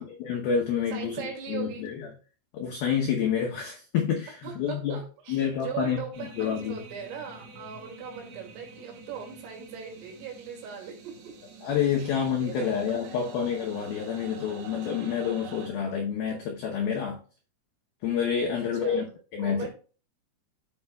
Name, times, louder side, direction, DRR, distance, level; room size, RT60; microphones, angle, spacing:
voice 1, 0.2-2.1 2.5-5.0 5.3-6.0 6.4-6.8 11.6-17.2 18.0-19.0 19.3-19.7, left 7 dB, 85° left, 2.1 m, -28 dB
voice 2, 0.9-1.9 4.4-11.3 12.0-12.1 12.4-13.3 18.5-19.1 19.4-19.7, right 7 dB, 85° right, 4.9 m, -39 dB
sound 1, 6.1-15.7, right 4 dB, 65° right, 3.4 m, -47 dB
14.0 x 5.6 x 2.3 m
omnidirectional pair, 5.8 m